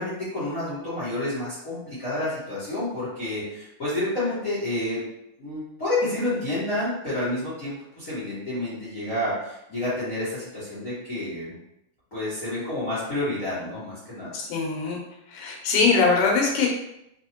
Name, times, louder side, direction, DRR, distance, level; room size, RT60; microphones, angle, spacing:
voice 1, 0.0-5.0 5.4-11.5 12.1-14.4, left 1 dB, 55° left, -11 dB, 0.9 m, -29 dB
voice 2, 14.3-15.0 15.3-16.7, left 4 dB, 75° left, 0 dB, 2.3 m, -22 dB
4.9 x 2.9 x 2.9 m, 0.82 s
omnidirectional pair, 3.8 m